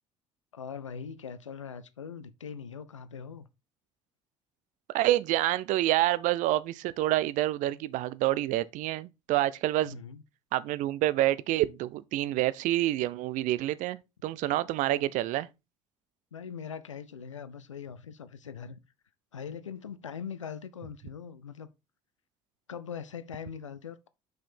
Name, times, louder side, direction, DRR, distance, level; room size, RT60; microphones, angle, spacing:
voice 1, 0.5-3.5 9.8-10.2 16.3-18.8 19.3-21.7 22.7-24.1, left 7 dB, 90° left, 0.4 m, -41 dB
voice 2, 4.9-10.0 10.5-15.5, right 15 dB, 55° right, 0.5 m, -27 dB
5.7 x 5.1 x 4.3 m
figure-of-eight pair, 55°, 15 cm